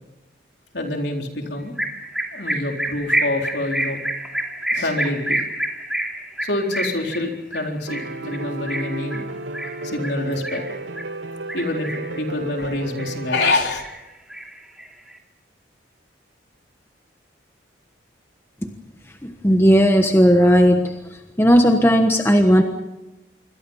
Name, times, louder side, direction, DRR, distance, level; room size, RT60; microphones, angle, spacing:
voice 1, 0.7-1.8 2.3-4.0 4.2-4.4 4.7-5.4 6.4-9.3 9.8-10.6 11.5-13.8, left 2 dB, 60° left, 2 dB, 4.2 m, -26 dB
sound 1, 1.8-11.1 11.5-12.2 12.6-13.5 13.8-15.1, right 1 dB, 5° right, 2.9 m, -28 dB
Piano, 7.9-13.5, right 2 dB, 70° right, 1.0 m, -33 dB
voice 2, 19.2-21.0 21.4-22.6, equal, 10° left, 5 dB, 1.3 m, -15 dB
26.5 x 24.0 x 5.7 m, 1.0 s
head